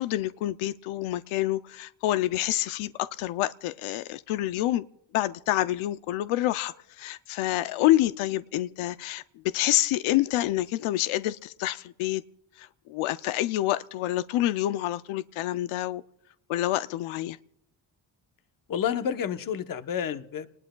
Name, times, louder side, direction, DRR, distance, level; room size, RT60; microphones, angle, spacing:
voice 1, 0.0-4.9 5.1-9.2 9.5-12.2 12.6-16.0 16.5-17.4, left 15 dB, 90° left, 14 dB, 0.6 m, -27 dB
voice 2, 18.7-20.5, left 8 dB, 45° left, 10 dB, 0.9 m, -29 dB
29.5 x 19.5 x 2.2 m, 0.81 s
cardioid pair, 120°, 47 cm